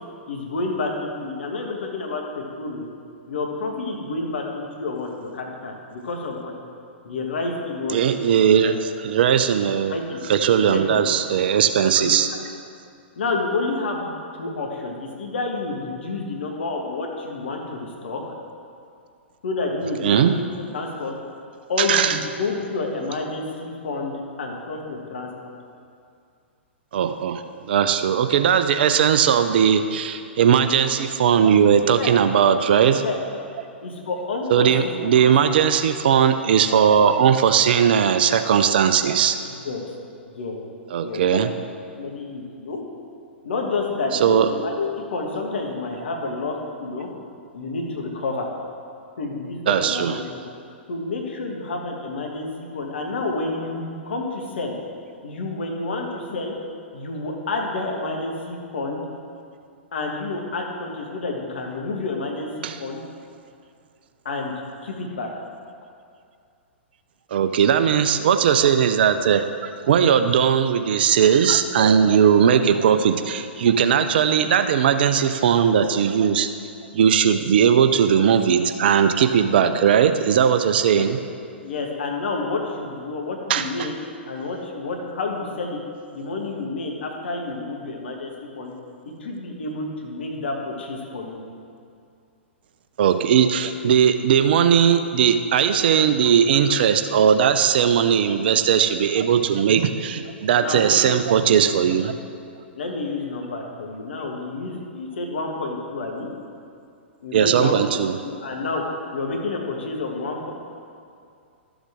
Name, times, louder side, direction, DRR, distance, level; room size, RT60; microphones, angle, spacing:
voice 1, 0.3-2.9 3.3-6.5 7.0-8.1 8.5-8.8 9.9-10.2 10.7-11.0 11.9-12.2 13.2-14.1 14.4-18.2 19.4-20.4 20.7-21.1 21.7-25.3 32.0-32.1 33.0-33.2 33.8-34.9 35.2-35.6 39.4-39.8 40.2-40.6 41.0-41.4 42.0-42.8 43.4-47.1 47.5-48.5 49.2-50.4 50.9-54.8 55.2-56.5 56.9-59.0 59.9-63.0 64.2-64.5 64.8-65.3 79.6-79.7 80.9-81.0 81.6-84.0 84.2-85.8 86.1-88.7 89.0-91.4 100.6-101.2 102.7-106.3 107.2-108.8 109.1-110.5, left 3 dB, 65° left, 1 dB, 1.6 m, -29 dB
voice 2, 7.9-10.0 10.3-12.3 20.0-20.3 21.8-22.2 26.9-33.0 34.5-39.4 40.9-41.5 44.2-44.5 49.7-50.1 62.6-62.8 67.3-76.5 76.9-81.2 83.5-83.7 93.0-102.1 107.3-108.2, right 8 dB, 55° right, 9 dB, 0.6 m, -18 dB
12.5 x 7.2 x 3.6 m, 2.4 s
figure-of-eight pair, 110°, 6 cm